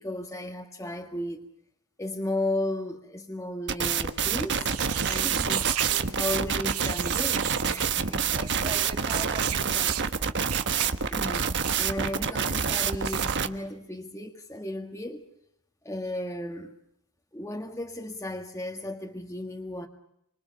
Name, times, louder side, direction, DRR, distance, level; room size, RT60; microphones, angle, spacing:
voice 1, 0.0-1.5 2.0-4.7 5.1-8.3 10.9-15.2 15.8-16.7 17.3-19.9, left 1 dB, 15° left, 1.7 m, -35 dB
sound 1, 3.7-13.5, right 6 dB, 55° right, 1.3 m, -27 dB
sound 2, 4.6-6.1 6.7-7.9 8.4-8.8 9.1-9.6 9.9-10.1 10.5-10.9 11.3-11.8 13.0-13.4, right 12 dB, 80° right, 1.2 m, -33 dB
voice 2, 5.2-5.6 8.3-10.3, right 2 dB, 25° right, 2.7 m, -40 dB
28.0 x 25.5 x 6.9 m
head